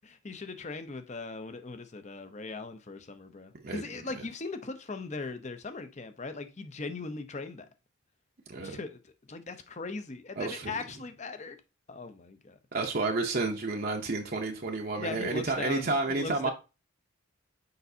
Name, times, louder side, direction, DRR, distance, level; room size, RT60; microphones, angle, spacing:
voice 1, 0.0-7.7 8.6-11.6 11.9-12.6 15.0-16.5, left 3 dB, 35° left, 0.6 m, -39 dB
voice 2, 10.4-10.7 12.7-16.5, right 3 dB, 45° right, 0.7 m, -30 dB
6.7 x 5.2 x 2.7 m
head